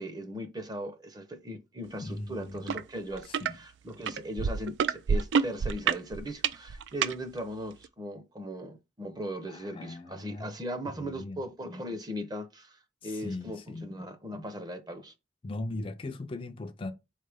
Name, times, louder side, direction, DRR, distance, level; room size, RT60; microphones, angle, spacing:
voice 1, 0.0-15.1, equal, 25° right, 0.7 m, -38 dB
voice 2, 2.0-2.7 3.3-3.6 9.5-10.5 10.9-11.4 13.0-13.9 15.4-16.9, left 2 dB, 30° left, 0.4 m, -39 dB
sound 1, 2.7-2.8 3.1-3.5 4.1-7.1 7.8-7.9, right 6 dB, 80° right, 0.3 m, -27 dB
4.2 x 3.2 x 3.4 m
head